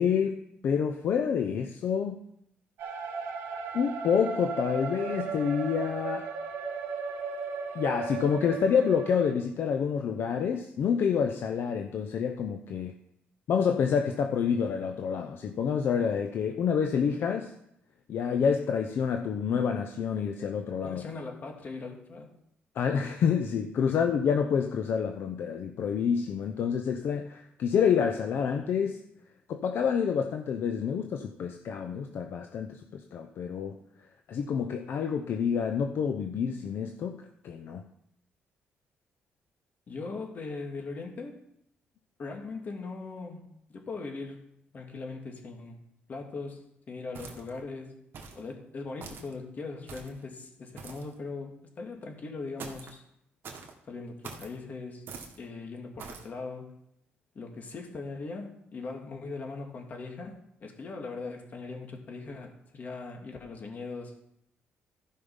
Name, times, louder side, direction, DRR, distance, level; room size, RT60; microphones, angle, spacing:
voice 1, 0.0-2.2 3.7-6.3 7.7-13.0 13.5-17.5 18.1-21.0 22.8-29.0 29.5-33.8 34.3-37.2 37.4-37.8, left 7 dB, 65° left, 5 dB, 0.8 m, -28 dB
sound 1, 2.8-9.3, right 5 dB, 85° right, 1.4 m, -35 dB
voice 2, 20.8-22.3 39.9-41.3 42.2-44.4 44.7-45.8 46.1-47.9 48.4-51.5 51.8-53.0 53.9-55.1 55.4-56.7 57.3-60.3 60.6-64.1, left 3 dB, 45° left, 2 dB, 2.3 m, -40 dB
sound 2, 47.1-47.6 48.1-48.5 49.0-49.3 49.9-50.2 50.8-51.1 52.6-53.0 53.4-53.7 54.2-54.5 55.1-55.4 56.0-56.3, right 5 dB, 65° right, 1.9 m, -44 dB
14.0 x 5.6 x 5.6 m, 0.76 s
cardioid pair, 105°, 4 cm